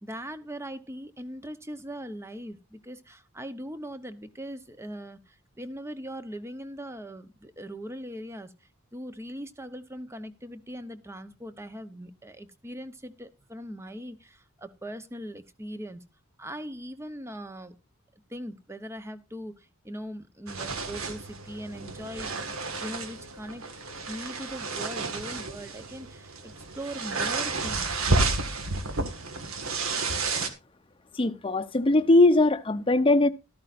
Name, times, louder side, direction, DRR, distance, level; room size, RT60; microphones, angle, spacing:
voice 1, 0.0-16.0 16.4-17.8 18.3-22.3 22.8-23.6 24.1-28.1, equal, 15° right, 0.8 m, -40 dB
sound 1, 20.5-30.5, right 3 dB, 85° right, 1.7 m, -31 dB
voice 2, 31.1-33.3, left 2 dB, 25° left, 0.7 m, -20 dB
13.5 x 13.0 x 2.5 m
head